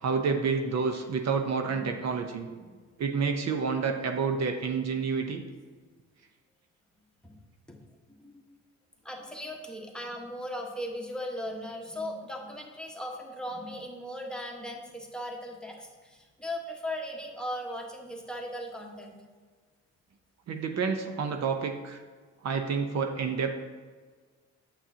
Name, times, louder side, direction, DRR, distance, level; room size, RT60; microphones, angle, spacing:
voice 1, 0.0-2.5 3.0-5.4 20.5-22.0 22.4-23.6, right 5 dB, 60° right, 5 dB, 0.8 m, -29 dB
voice 2, 1.6-2.0 2.5-2.7 7.2-7.4 7.7-7.8 8.1-8.4 9.0-19.2, equal, 5° left, 0 dB, 1.3 m, -38 dB
8.7 x 7.4 x 2.8 m, 1.5 s
cardioid pair, 90°, 30 cm